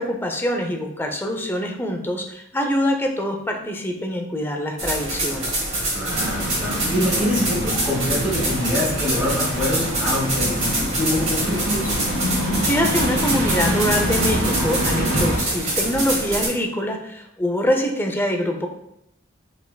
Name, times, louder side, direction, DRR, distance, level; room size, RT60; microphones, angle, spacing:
voice 1, 0.0-5.6 12.6-18.7, equal, 10° left, 2 dB, 0.4 m, -24 dB
sound 1, 4.8-16.5, right 1 dB, 35° right, 1.5 m, -25 dB
voice 2, 5.9-12.0, left 1 dB, 5° right, -6 dB, 1.0 m, -25 dB
sound 2, 6.1-15.4, equal, 90° right, 1.3 m, -26 dB
5.4 x 3.5 x 2.2 m, 0.80 s
head